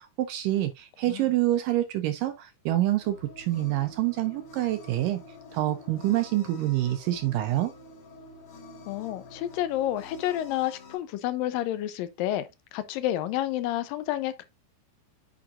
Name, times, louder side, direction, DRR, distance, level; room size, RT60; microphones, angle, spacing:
voice 1, 0.0-5.2 5.5-7.7, right 14 dB, 80° right, 2.1 m, -27 dB
sound 1, 3.0-11.0, left 3 dB, 55° left, 1.9 m, -48 dB
voice 2, 8.9-14.4, left 13 dB, 80° left, 2.3 m, -30 dB
8.7 x 6.2 x 2.5 m
omnidirectional pair, 4.4 m